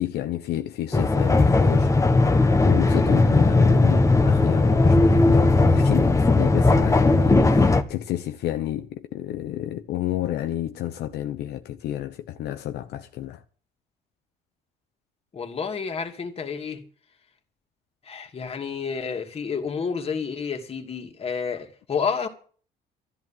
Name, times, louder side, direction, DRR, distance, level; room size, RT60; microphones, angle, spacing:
voice 1, 0.0-1.9 2.6-13.4, left 13 dB, 75° left, 0.9 m, -30 dB
sound 1, 0.9-7.8, left 2 dB, 20° left, 1.4 m, -18 dB
voice 2, 15.3-16.8 18.1-22.3, left 6 dB, 35° left, 2.7 m, -30 dB
13.5 x 11.0 x 7.5 m
cardioid pair, 110°, 17 cm